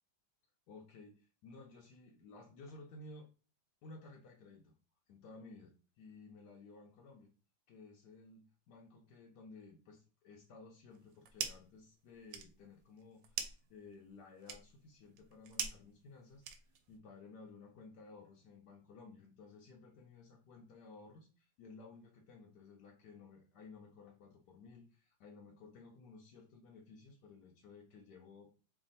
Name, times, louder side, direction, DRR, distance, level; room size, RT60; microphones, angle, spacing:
voice 1, 0.7-3.3 3.8-4.8 5.1-7.3 7.7-16.4 16.9-28.5, left 3 dB, 75° left, 1 dB, 1.2 m, -56 dB
sound 1, 10.9-11.8 12.1-17.0, right 7 dB, 90° right, 1.3 m, -44 dB
3.3 x 2.2 x 3.9 m, 0.35 s
omnidirectional pair, 1.9 m